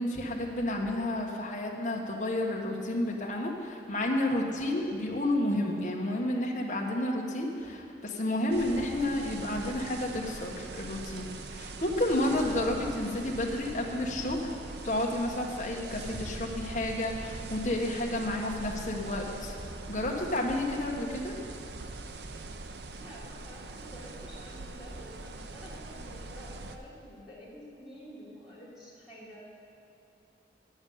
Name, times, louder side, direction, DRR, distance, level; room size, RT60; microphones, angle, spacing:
voice 1, 0.0-14.5 14.8-19.5 19.9-21.4, left 1 dB, 40° left, -1 dB, 1.3 m, -31 dB
sound 1, 8.5-26.8, right 3 dB, 70° right, 0.6 m, -42 dB
voice 2, 23.0-29.4, equal, 5° right, -9 dB, 3.3 m, -49 dB
9.6 x 7.2 x 8.6 m, 2.8 s
head